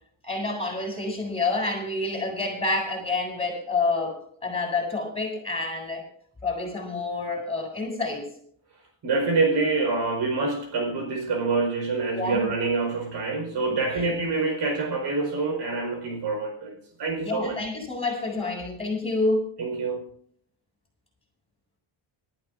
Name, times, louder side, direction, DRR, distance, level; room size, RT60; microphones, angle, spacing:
voice 1, 0.2-6.0 6.4-8.3 12.1-12.5 13.5-13.6 13.9-14.1 17.2-19.5, left 3 dB, 15° left, 0 dB, 7.9 m, -28 dB
voice 2, 9.0-17.6 19.6-20.1, right 3 dB, 65° right, 5 dB, 4.4 m, -26 dB
25.0 x 13.5 x 2.5 m, 0.63 s
cardioid pair, 120°, 45 cm